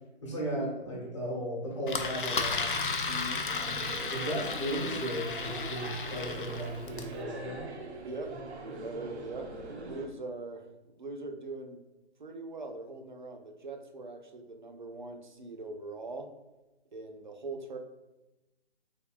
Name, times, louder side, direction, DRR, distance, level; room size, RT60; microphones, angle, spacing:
voice 1, 0.2-2.7 3.6-3.8 4.1-7.6, equal, 30° left, -4 dB, 1.0 m, -35 dB
Engine, 1.9-7.1, left 4 dB, 50° left, 0.4 m, -34 dB
voice 2, 3.0-3.5 8.0-8.4 8.8-10.6 11.0-11.8 12.2-16.3 16.9-17.8, right 2 dB, 45° right, 5 dB, 0.4 m, -41 dB
sound 1, 3.4-10.1, right 3 dB, 80° right, 0.8 m, -42 dB
3.9 x 3.5 x 2.3 m, 1.0 s
hypercardioid pair, 175°, 33 cm